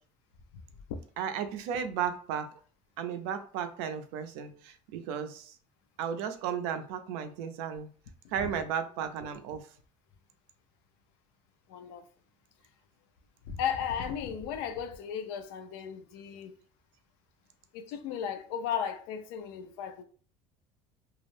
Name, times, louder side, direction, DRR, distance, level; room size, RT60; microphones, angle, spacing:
voice 1, 1.2-2.5 3.0-5.5 6.0-7.9 8.3-9.6, right 8 dB, 90° right, 0.4 m, -34 dB
voice 2, 11.7-12.0 13.5-16.6 17.7-20.0, left 8 dB, 85° left, 0.4 m, -35 dB
2.3 x 2.0 x 3.1 m
cardioid pair, 140°, 12 cm